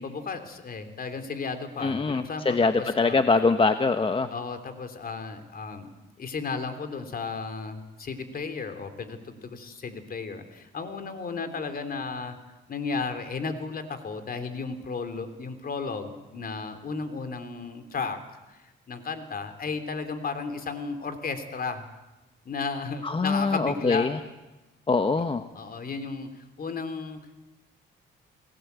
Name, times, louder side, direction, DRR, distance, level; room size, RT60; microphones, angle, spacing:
voice 1, 0.0-3.2 4.3-5.9 6.2-12.4 12.7-18.2 18.5-21.8 22.5-24.1 25.6-27.2, left 4 dB, 50° left, 8 dB, 3.3 m, -34 dB
voice 2, 1.8-4.3 23.0-24.2 24.9-25.4, left 4 dB, 25° left, 8 dB, 1.2 m, -23 dB
29.5 x 19.0 x 8.3 m, 1.1 s
cardioid pair, 90°, 20 cm